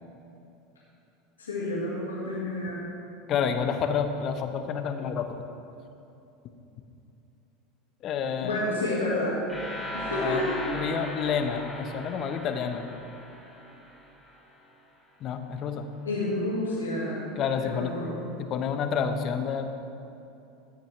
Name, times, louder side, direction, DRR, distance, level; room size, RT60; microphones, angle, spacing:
voice 1, 1.4-2.8 8.4-9.4 9.9-10.6 16.0-18.1, left 2 dB, 90° left, -7 dB, 1.9 m, -30 dB
voice 2, 3.3-5.3 8.0-8.6 10.2-10.4 10.7-12.9 15.2-15.9 17.4-17.9 18.4-19.7, left 7 dB, 45° left, 7 dB, 0.9 m, -29 dB
sound 1, 9.5-14.4, left 1 dB, 10° left, 2.6 m, -38 dB
14.0 x 9.0 x 3.4 m, 2.8 s
hypercardioid pair, 80°, 0 cm